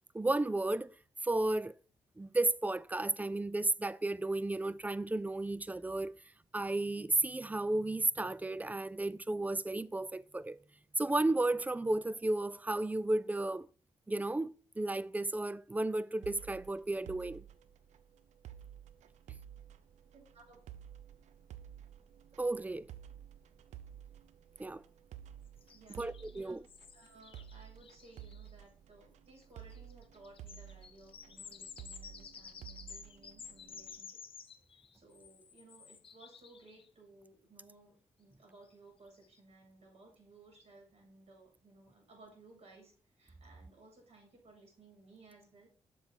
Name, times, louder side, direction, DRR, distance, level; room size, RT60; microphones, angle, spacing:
voice 1, 0.1-0.9 1.2-1.8 2.2-6.2 6.5-10.6 11.0-13.7 14.1-17.4 22.4-22.9 24.6-24.8 26.0-26.6, right 2 dB, 15° right, 0.3 m, -33 dB
sound 1, 16.2-34.0, right 10 dB, 75° right, 0.5 m, -53 dB
voice 2, 20.1-20.6 25.7-26.5 26.9-34.2 34.9-45.7, right 2 dB, 55° right, 3.0 m, -59 dB
sound 2, 25.6-28.5 29.4-29.5 29.7-36.9 38.7-38.8 39.2-39.4, left 6 dB, 50° left, 0.6 m, -53 dB
7.0 x 3.8 x 4.3 m
supercardioid pair, 60°, 12 cm